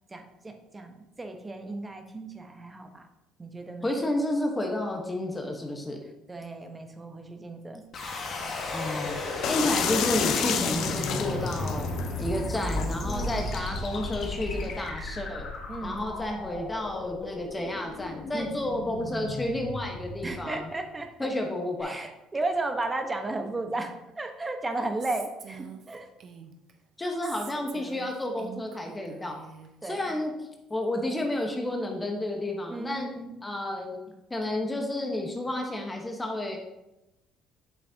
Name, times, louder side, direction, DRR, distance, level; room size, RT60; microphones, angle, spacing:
voice 1, 0.1-3.0 3.4-4.0 6.3-7.8 13.0-13.4 15.7-16.1 18.3-18.6 20.2-21.3 21.8-26.1 29.8-30.2 32.7-33.3, right 2 dB, 20° right, 5 dB, 1.1 m, -34 dB
voice 2, 3.8-6.0 8.7-11.9 12.2-15.5 15.8-20.7 21.2-21.9 27.0-29.4 29.8-30.3 30.7-33.1 33.4-34.0 34.3-36.6, left 1 dB, 20° left, 2 dB, 1.2 m, -31 dB
sound 1, 7.9-20.9, left 2 dB, 50° left, 1.6 m, -34 dB
sound 2, 9.4-14.9, left 7 dB, 65° left, 0.7 m, -32 dB
Female speech woman speaking, 25.0-26.7 27.2-29.7, right 7 dB, 55° right, 0.9 m, -45 dB
8.1 x 6.7 x 2.9 m, 0.95 s
supercardioid pair, 70°, 0 cm